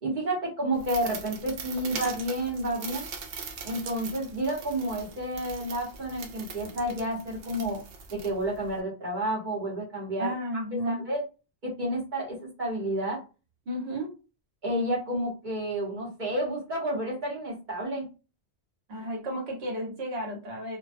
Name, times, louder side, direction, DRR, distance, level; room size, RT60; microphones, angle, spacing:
voice 1, 0.0-3.1 3.6-7.8 8.1-10.3 10.8-11.2 11.6-13.2 14.6-18.1, right 1 dB, 50° right, -3 dB, 1.0 m, -30 dB
sound 1, 0.7-8.8, right 5 dB, 90° right, 0.9 m, -41 dB
voice 2, 10.2-11.1 13.7-14.1 18.9-20.8, equal, 70° right, -1 dB, 1.2 m, -33 dB
2.3 x 2.2 x 2.4 m, 0.32 s
omnidirectional pair, 1.1 m